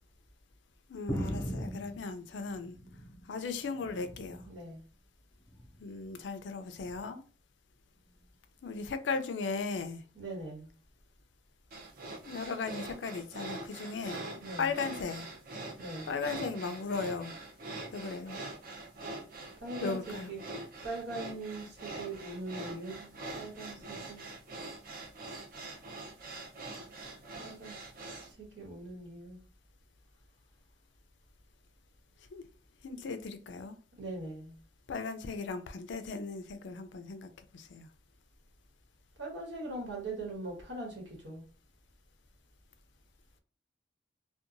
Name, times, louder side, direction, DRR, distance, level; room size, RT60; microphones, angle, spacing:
voice 1, 0.9-2.8 3.3-4.4 5.8-7.2 8.6-10.0 12.2-14.2 14.6-15.3 16.1-17.3 17.9-18.4 19.8-20.3 32.3-32.4 32.8-33.8 34.9-37.9, left 4 dB, 80° left, 0.4 m, -37 dB
sound 1, 1.1-3.3 3.7-4.6 5.5-5.9 6.9-7.0, equal, 15° left, 0.4 m, -39 dB
voice 2, 4.4-4.8 10.1-10.7 14.3-14.7 15.8-16.1 19.6-20.4 20.8-23.1 23.3-24.3 27.4-27.8 28.2-29.4 34.0-34.5 39.2-41.4, right 2 dB, 90° right, 1.3 m, -41 dB
sound 2, 11.7-28.3, right 2 dB, 50° right, 0.6 m, -44 dB
2.7 x 2.2 x 2.5 m
head